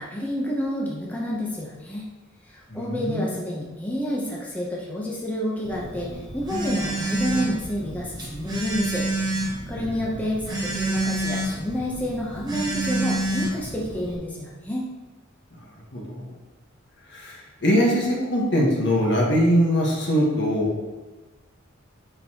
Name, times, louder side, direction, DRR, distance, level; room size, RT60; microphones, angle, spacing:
voice 1, 0.0-2.1 2.5-14.8, equal, 10° left, -4 dB, 0.8 m, -29 dB
voice 2, 2.7-3.3 9.8-9.9 15.9-16.3 17.1-20.8, equal, 60° left, -2 dB, 1.4 m, -22 dB
Telephone, 5.6-14.2, right 1 dB, 20° right, 1.0 m, -29 dB
6.5 x 5.3 x 2.9 m, 1.2 s
head